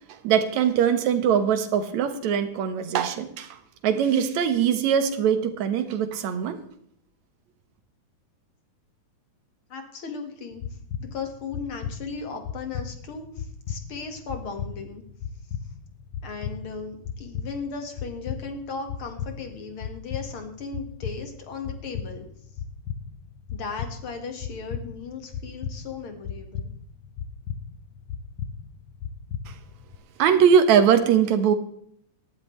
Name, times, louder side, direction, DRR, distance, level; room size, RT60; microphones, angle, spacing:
voice 1, 0.2-6.6 29.5-29.6 30.2-31.5, right 8 dB, 70° right, 2.5 m, -21 dB
voice 2, 9.7-10.6 11.0-15.0 16.2-22.3 23.5-26.7, left 5 dB, 50° left, 2.3 m, -36 dB
sound 1, 10.5-30.0, left 7 dB, 70° left, 1.6 m, -37 dB
19.0 x 12.5 x 3.2 m
omnidirectional pair, 3.4 m